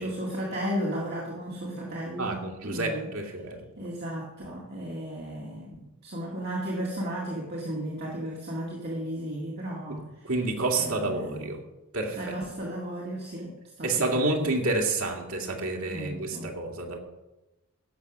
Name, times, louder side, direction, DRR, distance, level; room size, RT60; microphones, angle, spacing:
voice 1, 0.0-3.1 3.8-10.3 10.7-11.5 12.2-14.5 15.9-16.5, equal, 50° right, -3 dB, 2.0 m, -34 dB
voice 2, 2.2-3.7 10.2-11.6 11.9-12.3 13.8-17.0, right 2 dB, 75° right, 2 dB, 2.2 m, -29 dB
16.0 x 6.7 x 6.1 m, 1.0 s
head